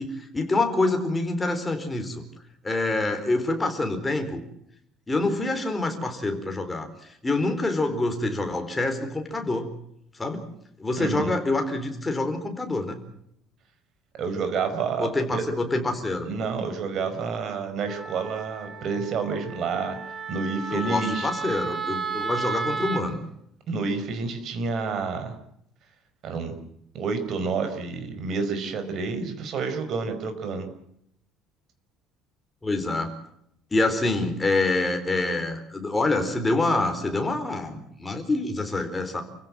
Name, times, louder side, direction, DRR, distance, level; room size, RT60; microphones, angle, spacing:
voice 1, 0.0-2.2 2.6-4.4 5.1-6.9 7.2-9.6 10.2-10.4 10.8-13.0 15.0-16.3 20.7-23.2 32.6-33.1 33.7-39.2, left 2 dB, 10° left, 5 dB, 4.1 m, -26 dB
voice 2, 11.0-11.3 14.2-15.4 16.3-20.0 20.3-21.3 23.7-25.4 26.2-26.6 26.9-30.7, right 5 dB, 45° right, 8 dB, 5.2 m, -29 dB
Wind instrument woodwind instrument, 17.9-23.0, right 4 dB, 15° right, 2.3 m, -33 dB
29.0 x 16.5 x 7.6 m, 0.76 s
cardioid pair, 160°, 0 cm